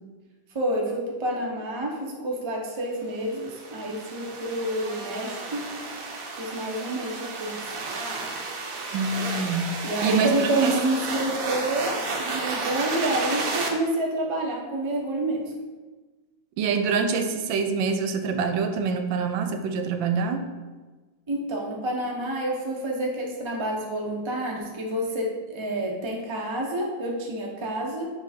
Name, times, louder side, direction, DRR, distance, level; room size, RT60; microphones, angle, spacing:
voice 1, 0.5-5.7 6.4-7.6 9.8-15.5 21.3-28.0, right 1 dB, 30° right, -2 dB, 0.5 m, -28 dB
sound 1, 3.2-13.7, right 3 dB, 60° right, 1.0 m, -32 dB
voice 2, 8.9-10.8 16.6-20.4, right 5 dB, 80° right, 7 dB, 1.3 m, -26 dB
7.2 x 3.2 x 4.3 m, 1.3 s
omnidirectional pair, 2.1 m